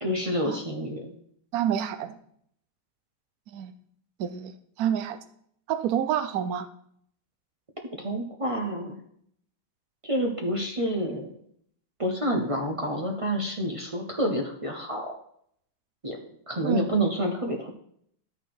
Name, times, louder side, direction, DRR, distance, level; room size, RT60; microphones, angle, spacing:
voice 1, 0.0-1.1 8.0-9.0 10.0-11.3 12.0-15.2 16.0-16.2 16.5-17.7, equal, 35° right, 2 dB, 0.5 m, -28 dB
voice 2, 1.5-2.2 3.5-3.7 4.2-4.5 4.8-5.2 5.7-6.7 16.6-16.8, right 9 dB, 65° right, 11 dB, 0.9 m, -28 dB
12.5 x 4.4 x 4.7 m, 0.67 s
omnidirectional pair, 2.2 m